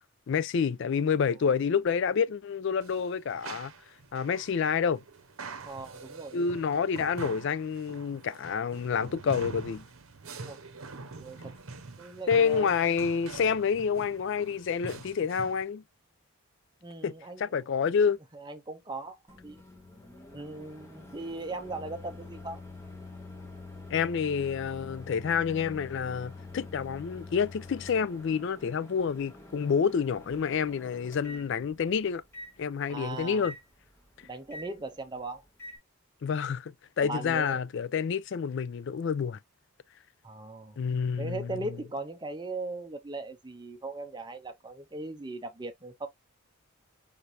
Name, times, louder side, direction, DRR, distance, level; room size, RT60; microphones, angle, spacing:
voice 1, 0.3-3.7 4.1-5.0 6.3-9.8 12.3-15.8 17.0-18.2 23.9-32.2 32.6-33.5 36.2-39.4 40.8-41.8, left 6 dB, 55° left, 0.3 m, -28 dB
sound 1, 2.8-15.6, right 4 dB, 65° right, 0.8 m, -45 dB
voice 2, 5.6-6.4 10.5-10.6 11.2-11.5 12.0-12.7 16.8-17.5 18.3-19.2 19.4-19.6 20.3-22.6 32.9-33.5 34.2-35.4 37.0-37.6 40.2-40.8 41.2-46.1, right 2 dB, 20° right, 0.7 m, -39 dB
Microwave oven, 19.3-35.8, left 2 dB, 10° left, 1.2 m, -47 dB
5.0 x 3.3 x 2.6 m
head